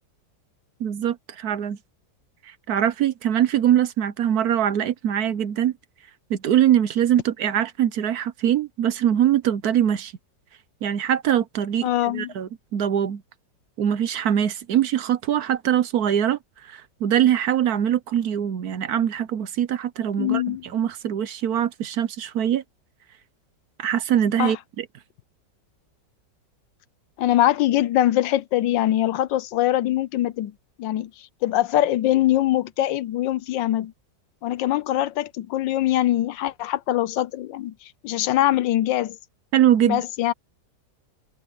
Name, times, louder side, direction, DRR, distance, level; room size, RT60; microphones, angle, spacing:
voice 1, 0.8-1.8 2.7-5.7 6.3-10.1 10.8-13.2 13.8-16.4 16.7-22.6 23.8-24.8 39.5-40.0, right 10 dB, 65° right, 1.2 m, -22 dB
voice 2, 11.8-12.3 20.2-20.7 24.4-24.6 27.2-30.5 30.8-33.9 34.4-39.2 39.8-40.3, left 13 dB, 85° left, 1.4 m, -23 dB
omnidirectional pair, 2.0 m